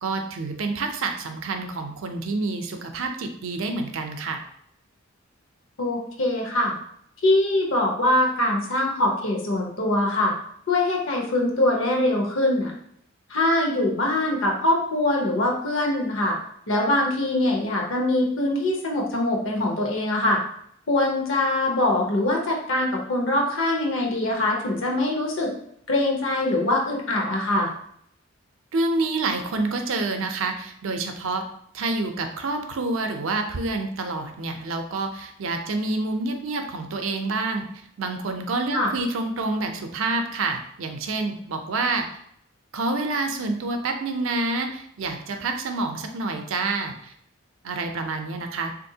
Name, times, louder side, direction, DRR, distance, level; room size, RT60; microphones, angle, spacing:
voice 1, 0.0-4.4 28.7-31.4 31.7-37.6 38.0-42.1 42.7-47.1 47.6-48.7, right 3 dB, 80° right, 5 dB, 0.5 m, -28 dB
voice 2, 5.8-6.7 7.2-10.3 10.7-12.7 13.3-16.4 16.7-20.4 20.9-25.5 25.9-27.7 38.7-38.9, left 1 dB, 75° left, 0 dB, 0.8 m, -23 dB
3.5 x 2.6 x 2.7 m, 0.69 s
head